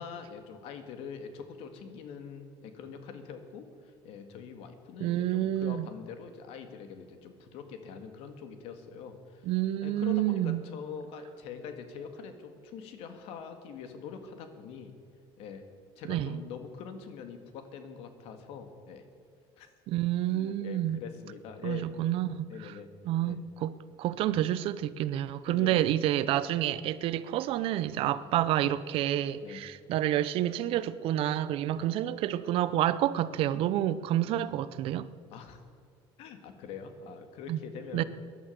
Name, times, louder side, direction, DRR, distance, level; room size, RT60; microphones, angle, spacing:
voice 1, 0.0-9.5 9.8-14.9 15.4-15.6 16.0-19.0 19.6-19.7 20.3-21.9 22.5-22.9 23.2-23.4 25.5-25.9 28.2-28.3 29.4-29.6 31.6-31.8 34.3-34.4 35.3-35.6 36.2-38.0, left 6 dB, 75° left, 1.9 m, -44 dB
voice 2, 5.0-5.9 9.4-10.6 16.1-16.4 19.9-21.0 21.6-22.7 23.1-35.1 37.5-37.6 37.9-38.0, right 12 dB, 65° right, 0.7 m, -29 dB
18.0 x 11.0 x 6.7 m
cardioid pair, 130°, 10 cm